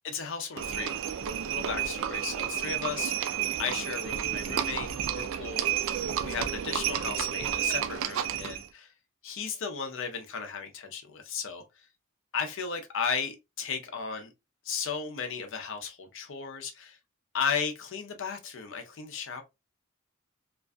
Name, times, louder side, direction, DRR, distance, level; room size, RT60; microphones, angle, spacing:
voice 1, 0.0-1.0 1.5-8.9 9.2-11.9 12.3-14.3 14.6-17.0 17.3-19.4, left 6 dB, 65° left, 0.6 m, -35 dB
Livestock farm animals working animals, 0.6-8.7, right 10 dB, 65° right, 0.3 m, -31 dB
2.5 x 2.3 x 2.3 m
head